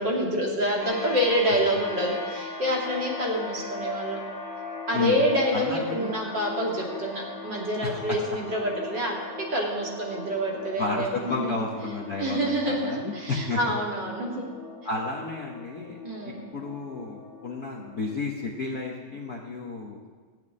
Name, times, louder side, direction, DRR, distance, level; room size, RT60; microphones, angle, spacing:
voice 1, 0.0-4.2 4.9-11.6 12.2-14.5 16.0-16.4, equal, 35° right, -2 dB, 2.7 m, -27 dB
sound 1, 0.8-18.0, left 3 dB, 30° left, 2.8 m, -39 dB
voice 2, 5.5-6.1 7.8-8.2 10.8-13.6 14.8-16.0 16.2-20.0, left 3 dB, 65° left, -1 dB, 0.9 m, -32 dB
14.0 x 7.3 x 9.8 m, 1.5 s
omnidirectional pair, 3.8 m